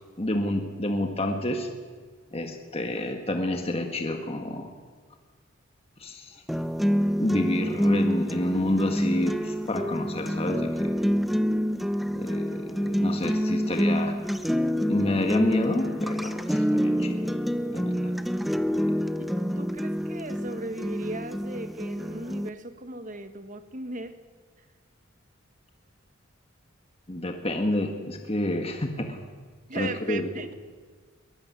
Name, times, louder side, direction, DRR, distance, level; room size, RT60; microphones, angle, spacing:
voice 1, 0.2-1.7 2.3-4.7 6.0-6.4 7.2-11.0 12.1-14.2 14.9-17.2 17.7-18.1 18.7-18.9 27.1-29.2 29.7-30.3, left 1 dB, 30° left, 4 dB, 1.7 m, -29 dB
sound 1, 6.5-22.5, equal, ahead, 0.7 m, -27 dB
voice 2, 19.2-24.2 24.6-24.7 29.7-30.5, right 2 dB, 35° right, 9 dB, 1.5 m, -37 dB
22.0 x 19.5 x 9.8 m, 1.5 s
head